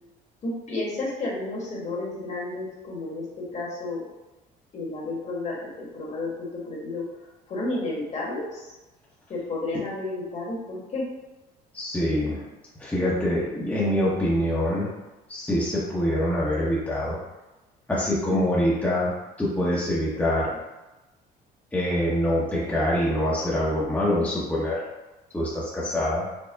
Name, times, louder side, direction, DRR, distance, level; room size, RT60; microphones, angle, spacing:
voice 1, 0.4-4.1 4.7-7.0 7.5-8.7 9.3-11.1 20.3-20.5, left 2 dB, 40° left, -4 dB, 1.4 m, -32 dB
voice 2, 11.7-12.4 12.8-14.9 15.3-17.2 17.9-19.1 19.4-20.5 21.7-24.8 25.3-26.3, left 1 dB, 10° left, -7 dB, 0.8 m, -25 dB
4.4 x 2.1 x 3.3 m, 1.1 s
cardioid pair, 110°, 17 cm